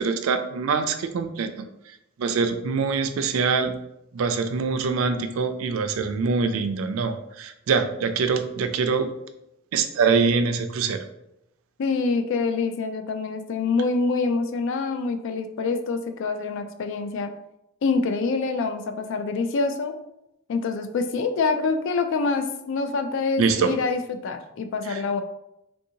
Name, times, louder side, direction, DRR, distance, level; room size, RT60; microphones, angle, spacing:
voice 1, 0.0-1.5 2.2-3.8 4.1-9.1 9.7-11.0 23.4-23.7 24.9-25.0, right 5 dB, 75° right, 9 dB, 0.4 m, -24 dB
voice 2, 11.8-17.3 17.8-19.9 20.5-25.2, left 4 dB, 65° left, 8 dB, 0.3 m, -26 dB
3.4 x 2.7 x 2.7 m, 0.85 s
head